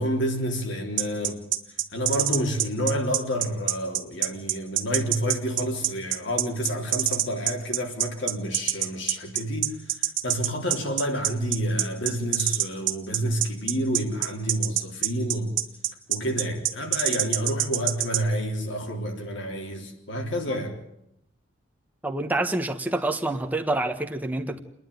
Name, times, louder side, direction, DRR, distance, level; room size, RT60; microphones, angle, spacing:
voice 1, 0.0-1.4 1.9-15.5 16.1-20.8, equal, 60° left, 3.7 m, -29 dB
sound 1, 1.0-18.2, right 13 dB, 65° right, 1.2 m, -25 dB
voice 2, 22.0-24.6, right 2 dB, 10° right, 1.2 m, -27 dB
29.0 x 10.5 x 9.4 m
head